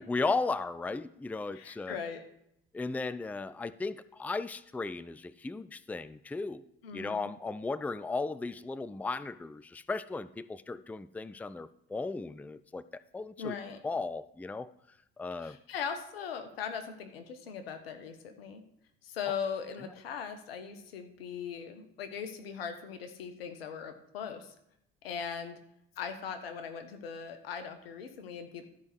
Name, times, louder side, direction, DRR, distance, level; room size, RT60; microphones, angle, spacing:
voice 1, 0.0-2.0 2.7-6.6 6.9-12.8 13.1-13.5 13.8-14.7 15.2-15.6, left 3 dB, 5° left, 16 dB, 0.4 m, -35 dB
voice 2, 1.5-2.2 6.8-7.3 13.4-13.8 15.4-18.6 19.0-24.5 25.0-25.6 26.0-28.7, left 6 dB, 85° left, 8 dB, 1.2 m, -39 dB
13.0 x 5.3 x 6.1 m, 0.75 s
hypercardioid pair, 65°, 29 cm